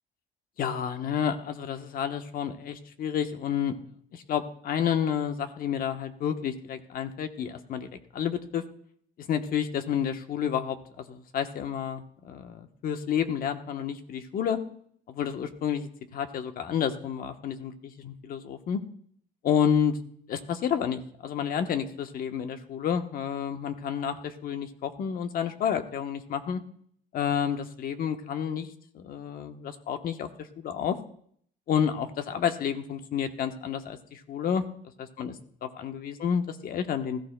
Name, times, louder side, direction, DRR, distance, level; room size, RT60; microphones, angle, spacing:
voice 1, 0.6-3.8 4.1-7.9 8.1-8.6 9.2-14.6 15.1-18.8 19.4-20.0 20.3-26.6 27.1-28.7 28.9-30.3 30.6-31.0 31.7-34.6 35.0-35.3 35.6-37.2, left 8 dB, 60° left, 7 dB, 1.1 m, -30 dB
20.0 x 14.5 x 2.2 m, 0.64 s
cardioid pair, 110°, 17 cm